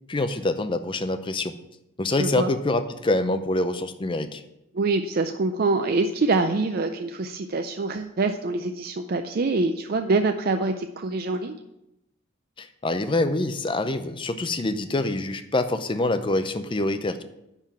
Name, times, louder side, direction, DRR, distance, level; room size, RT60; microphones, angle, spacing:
voice 1, 0.1-1.5 2.0-4.4 12.6-17.2, left 2 dB, 25° left, 9 dB, 0.5 m, -25 dB
voice 2, 2.2-2.5 4.7-11.6, right 3 dB, 45° right, 7 dB, 0.4 m, -25 dB
10.0 x 3.8 x 7.3 m, 0.87 s
head